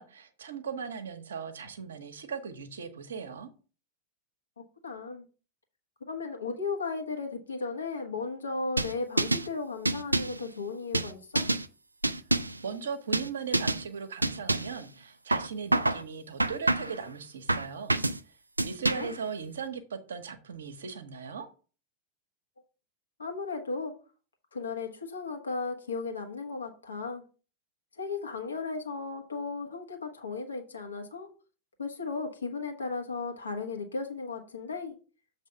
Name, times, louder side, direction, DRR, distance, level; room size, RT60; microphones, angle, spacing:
voice 1, 0.0-3.5 12.6-17.9 18.6-21.5, right 6 dB, 65° right, 1.0 m, -38 dB
voice 2, 4.8-5.2 6.1-11.5 19.0-19.1 23.2-24.0 24.5-27.2 28.0-31.3 31.8-34.9, left 4 dB, 75° left, 1.4 m, -35 dB
sound 1, 8.8-9.5 9.9-10.4 10.9-11.7 12.0-12.6 13.1-13.3 13.5-13.8 14.2-14.8 15.3-16.0 16.4-17.0 17.5-18.2 18.6-19.2, right 2 dB, 85° right, 0.4 m, -27 dB
7.3 x 3.3 x 5.6 m
figure-of-eight pair, 90°, 0 cm